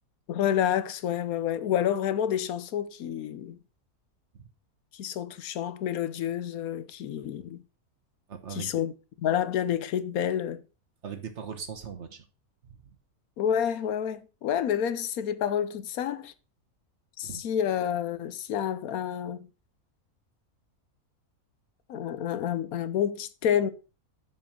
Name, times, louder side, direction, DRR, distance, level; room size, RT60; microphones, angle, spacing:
voice 1, 0.3-3.6 4.9-7.6 8.5-8.9 9.2-10.6 13.4-16.3 17.2-19.5 21.9-23.7, left 9 dB, 80° left, 1.2 m, -29 dB
voice 2, 8.3-8.8 11.0-12.3 12.6-13.0 17.2-17.4, right 7 dB, 55° right, 1.4 m, -40 dB
7.4 x 4.8 x 5.8 m
omnidirectional pair, 1.5 m